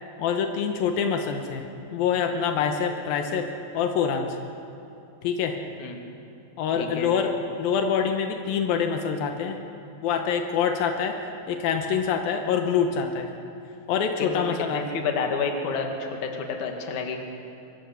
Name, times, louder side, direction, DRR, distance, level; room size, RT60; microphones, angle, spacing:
voice 1, 0.2-1.6 1.9-3.5 3.7-4.3 5.2-5.6 6.6-7.3 7.6-9.6 10.0-11.2 11.5-13.3 13.9-14.8, left 7 dB, 85° left, 4 dB, 2.9 m, -25 dB
voice 2, 6.7-7.1 14.2-17.2, left 4 dB, 60° left, 3 dB, 3.1 m, -29 dB
24.0 x 17.0 x 7.0 m, 2.8 s
omnidirectional pair, 4.0 m